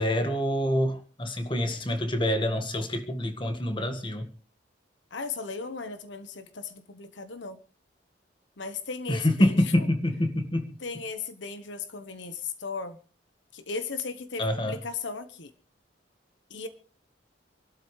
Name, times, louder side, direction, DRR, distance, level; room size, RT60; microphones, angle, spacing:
voice 1, 0.0-4.3 9.1-10.7 14.4-14.8, left 1 dB, 25° left, 1.7 m, -26 dB
voice 2, 5.1-7.6 8.6-9.9 10.8-13.0 13.5-15.5 16.5-16.7, left 4 dB, 70° left, 1.2 m, -36 dB
27.5 x 12.5 x 3.2 m
head